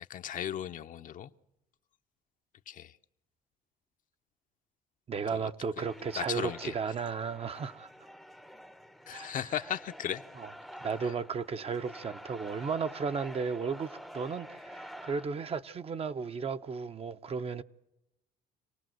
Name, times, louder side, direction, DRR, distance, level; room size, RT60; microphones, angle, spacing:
voice 1, 0.1-1.3 2.7-2.9 5.3-5.5 6.1-6.7 9.1-10.2 11.0-11.1, left 10 dB, 50° left, 0.8 m, -36 dB
voice 2, 5.1-7.9 9.1-9.3 10.4-10.5 10.8-17.6, right 5 dB, 35° right, 0.8 m, -34 dB
sound 1, 5.8-15.3, equal, ahead, 0.7 m, -48 dB
27.0 x 18.5 x 7.8 m
cardioid pair, 110°, 17 cm